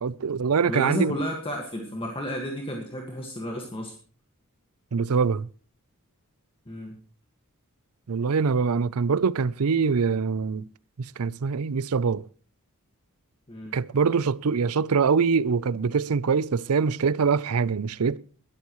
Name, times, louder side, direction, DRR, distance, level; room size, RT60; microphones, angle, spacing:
voice 1, 0.0-1.1 4.9-5.5 8.1-10.7 11.0-12.3 13.7-18.2, right 5 dB, 85° right, 0.5 m, -24 dB
voice 2, 0.7-3.9 6.7-7.0 13.5-13.8, equal, 25° left, 1.8 m, -32 dB
21.5 x 13.0 x 3.1 m
head